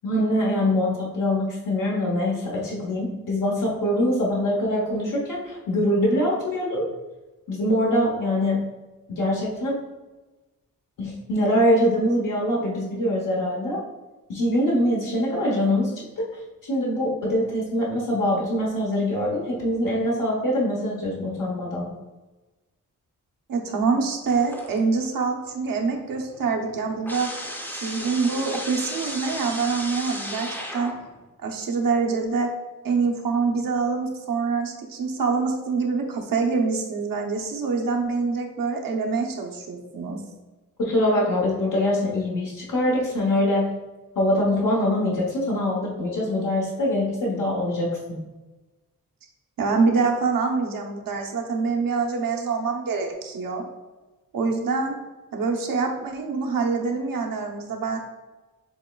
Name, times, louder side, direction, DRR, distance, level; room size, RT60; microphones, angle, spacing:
voice 1, 0.0-6.8 7.5-8.6 9.1-9.8 11.0-13.8 14.3-15.9 16.7-21.9 40.8-43.7 44.2-48.0, left 1 dB, 70° left, -4 dB, 0.9 m, -23 dB
voice 2, 23.5-27.3 27.7-30.9 31.4-32.5 32.8-40.2 49.6-53.6 54.3-55.0 55.3-58.0, right 4 dB, 80° right, 1 dB, 0.8 m, -25 dB
sound 1, 24.3-25.1 25.4-31.2, equal, 5° left, 0.6 m, -35 dB
7.1 x 3.1 x 2.3 m, 1.2 s
wide cardioid pair, 130°, 33 cm